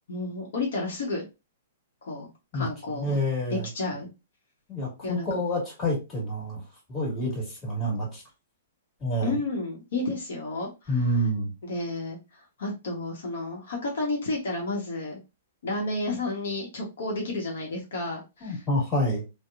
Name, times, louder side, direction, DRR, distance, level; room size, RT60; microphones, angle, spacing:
voice 1, 0.1-1.2 2.0-2.3 2.5-3.2 3.5-4.1 5.0-5.2 9.2-11.1 11.6-15.2 15.6-18.6, left 2 dB, 70° left, 0 dB, 0.9 m, -31 dB
voice 2, 2.9-3.7 4.7-6.6 6.9-8.2 9.0-9.4 10.9-11.5 18.4-19.2, equal, 20° left, -3 dB, 1.5 m, -28 dB
2.8 x 2.1 x 2.4 m, 0.26 s
hypercardioid pair, 125°, 0 cm